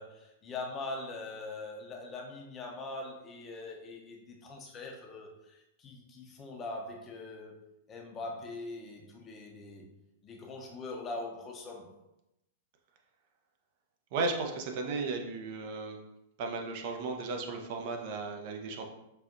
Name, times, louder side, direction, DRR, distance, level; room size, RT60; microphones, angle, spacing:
voice 1, 0.0-9.8 10.2-11.9, left 2 dB, 25° left, 0 dB, 0.7 m, -42 dB
voice 2, 14.1-16.0 16.4-18.8, right 3 dB, 50° right, 3 dB, 0.6 m, -35 dB
5.6 x 2.5 x 2.5 m, 0.88 s
figure-of-eight pair, 100°, 0 cm